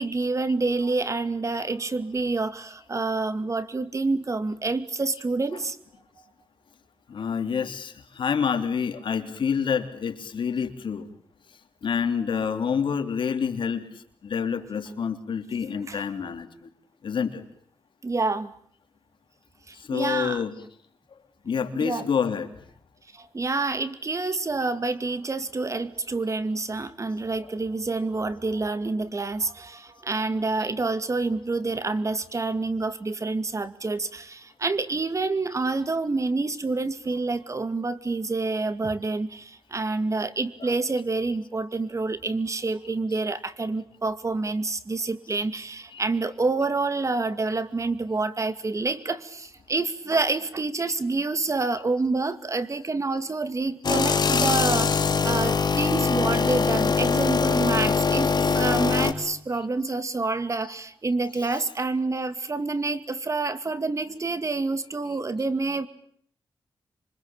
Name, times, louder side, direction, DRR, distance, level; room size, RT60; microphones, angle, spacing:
voice 1, 0.0-5.8 15.9-16.0 18.0-18.5 19.7-20.4 21.7-22.1 23.1-65.9, right 3 dB, 35° right, 12 dB, 2.3 m, -28 dB
voice 2, 7.1-11.1 11.8-13.9 14.2-16.7 17.0-17.4 19.7-20.6 21.4-22.5 24.2-24.4 27.4-27.6 40.6-40.8 43.1-43.2 45.9-46.0 50.3-50.4 56.4-56.5 58.4-58.5 59.6-60.0 60.6-60.7 61.3-61.6 63.4-63.5, left 6 dB, 70° left, 7 dB, 3.2 m, -28 dB
sound 1, 53.8-59.1, left 5 dB, 50° left, 3.1 m, -22 dB
27.5 x 24.5 x 8.9 m, 0.63 s
cardioid pair, 70°, 9 cm